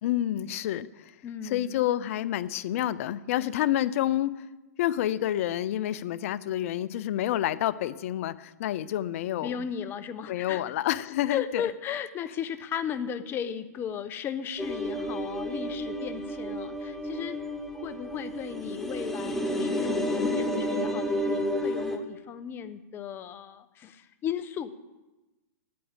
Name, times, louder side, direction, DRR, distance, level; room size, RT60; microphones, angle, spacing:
voice 1, 0.0-1.1 1.4-4.4 4.8-9.5 10.3-11.6, left 13 dB, 55° left, 17 dB, 0.6 m, -28 dB
voice 2, 1.2-1.8 9.4-10.6 11.3-17.4 17.7-24.7, left 8 dB, 25° left, 12 dB, 0.9 m, -35 dB
sound 1, 14.6-22.0, left 1 dB, 5° left, 1.3 m, -31 dB
9.9 x 8.6 x 8.9 m, 1.1 s
hypercardioid pair, 130°, 9 cm